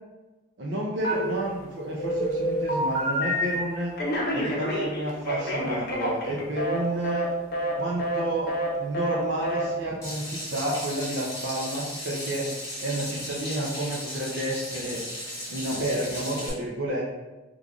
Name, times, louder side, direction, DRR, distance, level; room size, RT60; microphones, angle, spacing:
voice 1, 0.6-3.9 4.3-7.2 7.8-8.5 8.8-12.5 12.8-15.0 15.5-17.0, right 1 dB, 60° right, -4 dB, 0.5 m, -30 dB
Telephone, 1.0-1.6 2.0-3.6 4.0-6.8 7.0-7.3 7.5-7.7 8.0-8.2 8.5-8.7 8.9-9.2 9.4-9.6, equal, 45° left, 0.6 m, -28 dB
Water tap faucet / Sink (filling or washing), 10.0-16.5, equal, 15° left, 1.0 m, -36 dB
3.1 x 2.3 x 3.7 m, 1.1 s
head